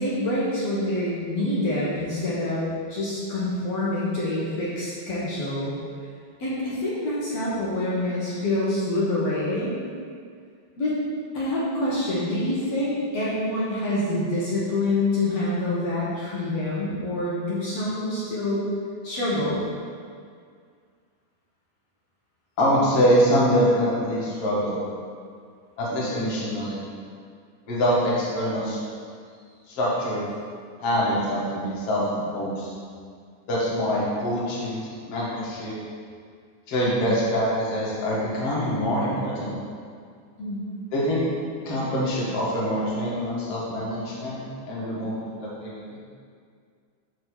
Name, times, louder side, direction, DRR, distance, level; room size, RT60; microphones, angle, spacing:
voice 1, 0.0-5.7 6.4-9.8 10.8-10.9 11.3-18.7 19.0-19.6 40.4-40.7, left 1 dB, 70° left, -8 dB, 1.5 m, -26 dB
voice 2, 22.6-24.8 25.8-26.8 27.7-28.8 29.7-30.2 30.8-32.7 33.5-35.8 36.7-39.5 40.9-41.2 41.6-44.4 44.7-46.0, equal, 50° left, -7 dB, 1.8 m, -24 dB
6.5 x 4.2 x 6.3 m, 2.1 s
omnidirectional pair, 4.8 m